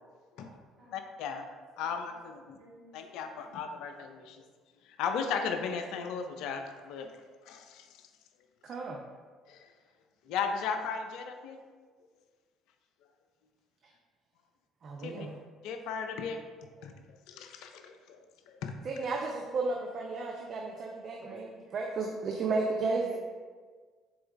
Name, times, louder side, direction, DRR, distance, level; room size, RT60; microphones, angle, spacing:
voice 1, 0.9-1.5 1.8-2.6 2.9-4.4 5.0-7.1 7.5-7.8 9.5-9.7 10.3-11.6 15.0-15.3 15.6-16.4 16.8-16.9 17.3-18.2 18.6-18.7, left 6 dB, 60° left, 6 dB, 0.4 m, -36 dB
voice 2, 2.4-3.6 21.2-21.6 22.9-23.2, right 3 dB, 60° right, -6 dB, 1.4 m, -54 dB
voice 3, 8.6-9.0 14.8-15.4 18.8-23.2, right 3 dB, 45° right, 1 dB, 0.4 m, -33 dB
4.1 x 3.3 x 3.5 m, 1.5 s
figure-of-eight pair, 50°, 0 cm